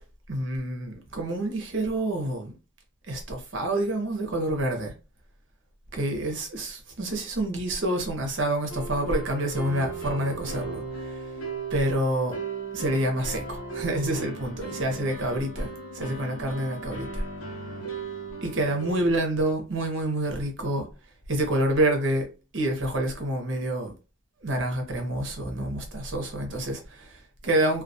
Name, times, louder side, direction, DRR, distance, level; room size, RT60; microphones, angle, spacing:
voice 1, 0.3-2.5 3.1-4.9 5.9-11.2 11.7-12.4 12.7-17.2 18.4-20.9 21.3-22.3 22.5-23.9 24.4-27.8, right 1 dB, 60° right, 0.7 m, -28 dB
sound 1, 8.7-19.1, right 4 dB, 80° left, 0.8 m, -37 dB
2.3 x 2.2 x 2.6 m
head